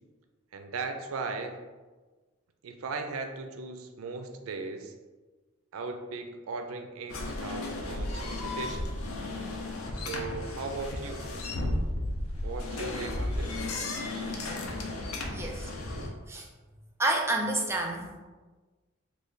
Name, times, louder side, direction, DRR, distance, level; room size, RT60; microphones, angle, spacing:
voice 1, 0.5-1.6 2.6-4.9 5.7-8.9 9.9-11.3 12.4-13.7, right 3 dB, 85° right, 5 dB, 0.4 m, -37 dB
sound 1, 7.1-16.1, left 2 dB, 90° left, 0.5 m, -34 dB
voice 2, 15.3-15.7 16.3-16.4 17.0-18.1, right 2 dB, 10° right, 1 dB, 0.4 m, -29 dB
3.2 x 2.3 x 3.8 m, 1.3 s
head